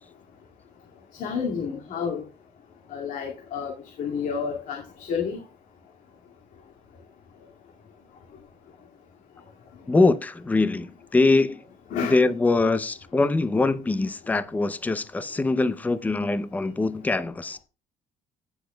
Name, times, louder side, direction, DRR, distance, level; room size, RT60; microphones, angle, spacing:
voice 1, 1.2-2.2 2.9-5.4 11.9-12.3, left 6 dB, 65° left, 2.2 m, -30 dB
voice 2, 9.9-11.6 12.0-17.6, left 3 dB, 10° left, 0.6 m, -23 dB
17.0 x 6.8 x 2.2 m
cardioid pair, 145°, 15 cm